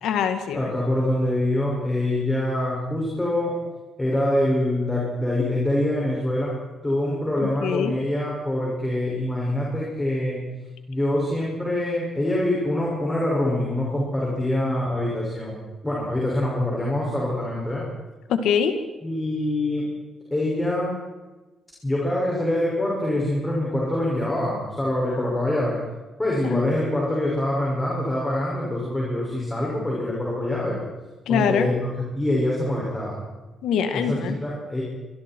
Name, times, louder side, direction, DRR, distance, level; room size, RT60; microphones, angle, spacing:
voice 1, 0.0-0.7 7.4-8.0 18.3-18.8 26.4-26.6 31.3-31.7 33.6-34.3, left 7 dB, 90° left, 7 dB, 1.9 m, -23 dB
voice 2, 0.5-3.6 4.0-6.6 6.8-10.4 10.9-17.8 19.0-19.9 20.3-20.9 21.8-25.8 26.2-30.8 31.3-31.7 32.0-33.2 33.9-34.8, left 1 dB, 10° left, -4 dB, 6.3 m, -25 dB
26.5 x 24.0 x 4.7 m, 1.2 s
cardioid pair, 130°, 0 cm